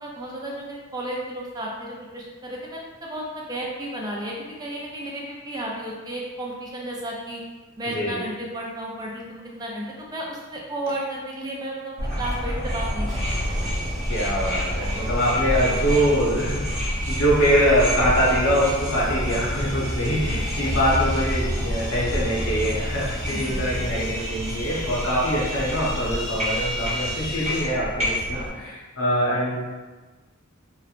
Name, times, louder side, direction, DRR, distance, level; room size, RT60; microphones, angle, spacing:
voice 1, 0.0-7.4 7.8-13.7 20.3-20.7 23.3-23.7, right 1 dB, 20° right, -2 dB, 0.3 m, -33 dB
sound 1, 12.0-28.5, equal, 35° right, 0.9 m, -28 dB
sound 2, 13.1-27.6, equal, 5° left, 0.9 m, -38 dB
voice 2, 14.1-29.7, equal, 70° left, -5 dB, 0.7 m, -24 dB
2.9 x 2.1 x 2.4 m, 1.3 s
head